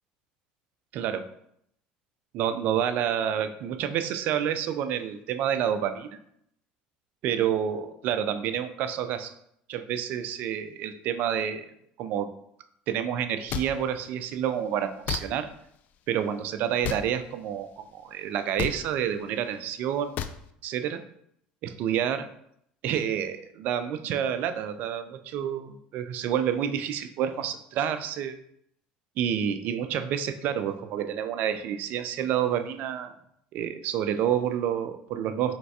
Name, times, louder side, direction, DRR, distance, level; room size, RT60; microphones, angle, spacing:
voice 1, 0.9-1.3 2.3-6.2 7.2-9.3 9.7-11.7 12.0-12.3 12.9-15.5 16.1-20.2 20.6-21.0 21.6-22.3 22.8-28.4 29.2-33.1 33.5-35.6, right 9 dB, 60° right, 10 dB, 0.4 m, -29 dB
sound 1, 13.5-13.7 15.1-15.2 16.8-17.0 18.6-18.8 20.2-20.4, left 9 dB, 50° left, 0.3 m, -30 dB
4.4 x 3.2 x 2.7 m, 0.72 s
supercardioid pair, 100°, 3 cm